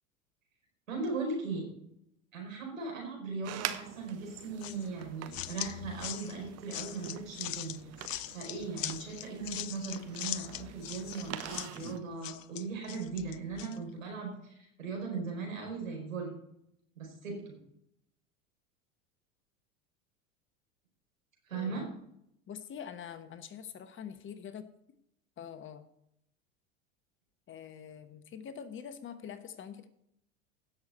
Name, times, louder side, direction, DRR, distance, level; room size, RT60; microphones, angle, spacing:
voice 1, 0.9-1.7 2.3-7.8 8.3-16.3 17.0-17.5 21.5-21.9, right 4 dB, 80° right, 1 dB, 4.7 m, -38 dB
sound 1, 3.4-12.0, right 12 dB, 40° right, 1.0 m, -45 dB
sound 2, 4.6-13.8, left 14 dB, 75° left, 0.6 m, -41 dB
voice 2, 21.5-21.9 22.5-24.6 25.4-25.9 27.5-29.9, left 8 dB, 30° left, 11 dB, 1.1 m, -45 dB
16.5 x 6.7 x 4.3 m, 0.77 s
hypercardioid pair, 85°, 40 cm